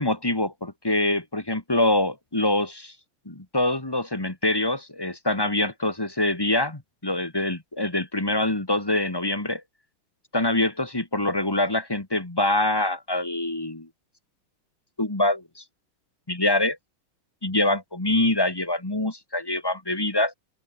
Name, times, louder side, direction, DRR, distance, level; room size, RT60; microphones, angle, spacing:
voice 1, 0.0-2.9 3.2-9.6 10.3-13.9 15.0-15.6 16.3-16.8 17.4-20.3, left 1 dB, 10° left, 1.7 m, -25 dB
open air
omnidirectional pair, 2.4 m